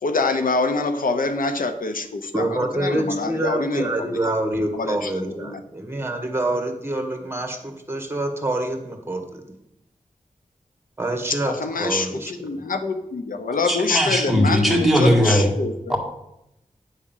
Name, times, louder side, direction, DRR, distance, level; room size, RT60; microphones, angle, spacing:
voice 1, 0.0-4.0 4.2-4.3 4.7-5.6 11.3-16.0, left 3 dB, 85° left, 8 dB, 0.7 m, -25 dB
voice 2, 2.3-9.4 11.0-11.5 11.8-12.6, right 1 dB, 15° right, 3 dB, 1.6 m, -26 dB
voice 3, 13.7-15.5 15.9-16.0, equal, ahead, 0 dB, 1.8 m, -18 dB
10.0 x 3.7 x 7.2 m, 0.83 s
wide cardioid pair, 85°, 14 cm